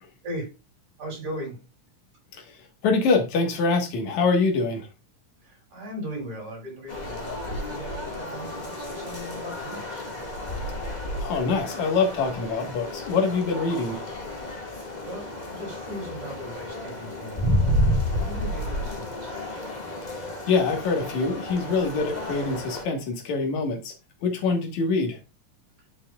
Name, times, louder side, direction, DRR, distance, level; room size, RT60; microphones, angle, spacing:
voice 1, 0.2-0.5 1.0-1.6 5.4-10.1 14.7-19.3 25.8-25.9, equal, 55° right, 6.4 m, -38 dB
voice 2, 2.8-4.9 11.1-14.0 20.2-23.9 24.2-25.2, left 4 dB, 60° left, 2.7 m, -24 dB
sound 1, 6.9-22.8, left 1 dB, 20° left, 1.1 m, -31 dB
10.5 x 6.9 x 2.4 m
omnidirectional pair, 3.8 m